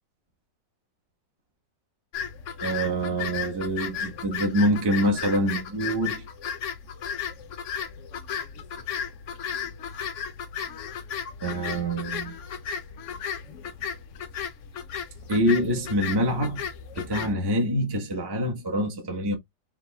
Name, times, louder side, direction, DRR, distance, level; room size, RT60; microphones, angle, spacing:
sound 1, 2.1-17.3, left 7 dB, 65° left, 0.7 m, -35 dB
voice 1, 2.6-6.2 11.4-12.3 15.3-16.7 16.9-19.3, equal, 15° right, 1.1 m, -25 dB
5.0 x 2.8 x 3.4 m
omnidirectional pair, 2.0 m